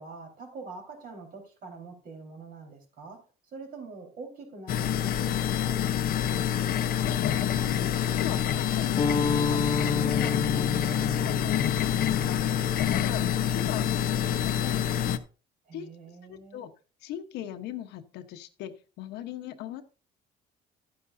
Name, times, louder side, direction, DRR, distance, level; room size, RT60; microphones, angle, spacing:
voice 1, 0.0-6.8 15.7-16.6, right 4 dB, 60° right, 4.4 m, -45 dB
sound 1, 4.7-15.2, left 10 dB, 60° left, 0.8 m, -27 dB
voice 2, 7.6-12.6 12.8-14.9 15.7-15.9 16.2-16.7 17.0-19.8, left 11 dB, 85° left, 1.1 m, -39 dB
sound 2, 9.0-14.2, left 4 dB, 30° left, 0.9 m, -31 dB
11.5 x 9.6 x 2.7 m
cardioid pair, 110°, 17 cm